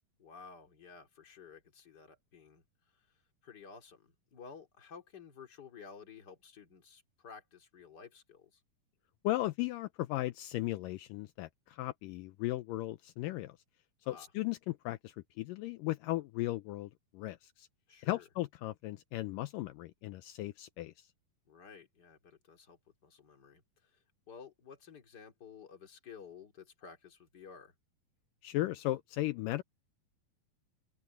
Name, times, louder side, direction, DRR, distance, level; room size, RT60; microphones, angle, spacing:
voice 1, 0.2-3.1 3.4-8.6 14.0-14.3 17.9-18.3 21.5-27.7, left 6 dB, 30° left, 3.0 m, -53 dB
voice 2, 9.2-13.6 14.1-17.7 18.0-20.9 28.4-29.6, left 16 dB, 80° left, 2.3 m, -36 dB
open air
omnidirectional pair, 4.0 m